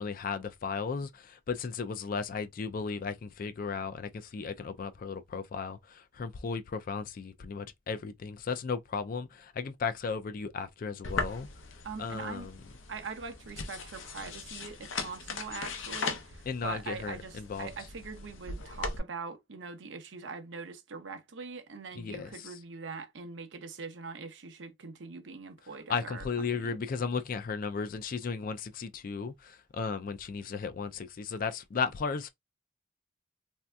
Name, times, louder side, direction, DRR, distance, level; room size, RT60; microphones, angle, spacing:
voice 1, 0.0-11.5 12.0-12.5 16.5-17.7 21.9-22.5 25.9-32.3, left 5 dB, 45° left, 0.4 m, -35 dB
sound 1, 11.0-19.0, left 4 dB, 90° left, 0.6 m, -39 dB
voice 2, 11.8-12.5 12.9-26.3 26.5-26.8, right 4 dB, 70° right, 0.7 m, -42 dB
3.3 x 2.7 x 2.2 m
head